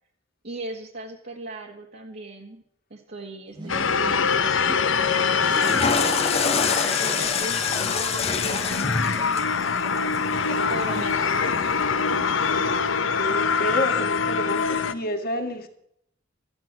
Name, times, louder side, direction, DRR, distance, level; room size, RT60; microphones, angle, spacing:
voice 1, 0.4-2.6 2.9-4.8 5.6-9.7 10.7-11.7, right 2 dB, 55° right, 1.8 m, -38 dB
sound 1, 3.5-4.0 4.7-4.8 5.5-5.7 6.3-6.4 7.1-7.2 7.8-7.9 8.5-8.6 9.2-9.3 9.8-9.9 10.5-10.6, right 1 dB, 25° right, 1.6 m, -39 dB
sound 2, 3.7-14.9, left 5 dB, 85° left, 0.9 m, -24 dB
Water / Toilet flush, 5.4-11.6, left 5 dB, 35° left, 1.0 m, -27 dB
voice 2, 13.2-15.7, equal, 50° left, 2.0 m, -29 dB
14.0 x 9.7 x 7.5 m
head